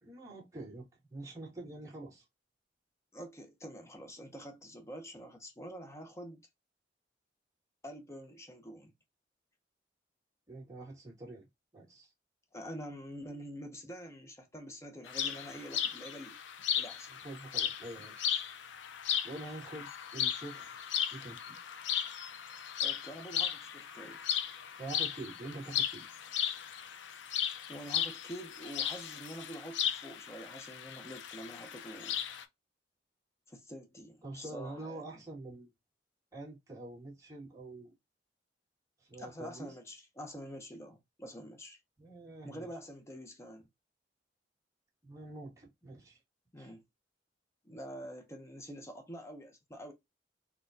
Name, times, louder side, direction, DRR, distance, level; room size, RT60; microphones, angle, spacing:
voice 1, 0.0-2.2 10.5-11.5 11.7-12.1 17.2-18.4 19.2-21.6 24.8-26.0 34.2-35.7 36.3-37.9 39.0-39.7 42.0-42.7 45.0-46.2 46.6-46.7, right 2 dB, 20° right, 1.7 m, -46 dB
voice 2, 3.1-6.5 7.8-8.9 12.5-16.4 16.8-17.1 22.8-24.2 27.7-32.2 33.5-35.2 39.2-41.8 42.4-43.6 46.5-46.8 47.6-49.9, equal, 15° left, 0.6 m, -46 dB
sound 1, 15.1-32.4, left 9 dB, 75° left, 0.5 m, -36 dB
4.1 x 2.2 x 2.6 m
head